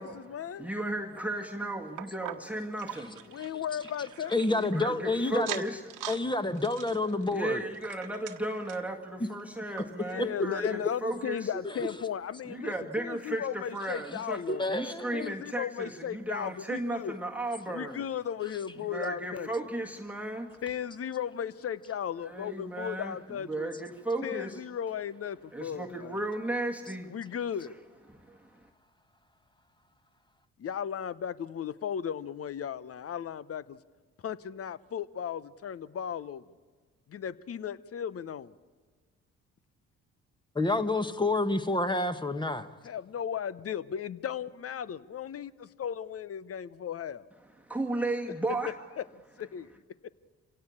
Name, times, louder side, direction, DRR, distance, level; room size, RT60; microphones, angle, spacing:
voice 1, 0.0-0.7 3.3-4.6 10.0-14.7 15.1-17.2 17.7-19.5 20.6-23.7 24.2-26.2 27.1-27.8 30.6-33.8 34.2-36.4 37.1-38.5 42.8-47.3 48.5-49.0 49.4-49.7 50.0-50.1, left 8 dB, 45° left, 17 dB, 0.9 m, -36 dB
voice 2, 0.6-3.4 4.6-5.8 7.3-11.5 12.5-14.4 14.7-18.0 18.9-20.6 22.3-23.2 23.5-24.6 25.5-27.2 28.1-28.7 47.6-48.8, right 1 dB, 5° right, 4 dB, 1.7 m, -35 dB
sound 1, 2.0-5.0 5.3-6.2 6.6-8.9 9.4-9.5 9.8-9.9 10.5-10.6, right 12 dB, 70° right, 1.3 m, -42 dB
voice 3, 4.3-5.6 6.1-7.6 14.5-15.3 40.5-42.7, left 2 dB, 15° left, 9 dB, 1.5 m, -28 dB
27.0 x 17.0 x 8.7 m, 1.4 s
hypercardioid pair, 50°, 34 cm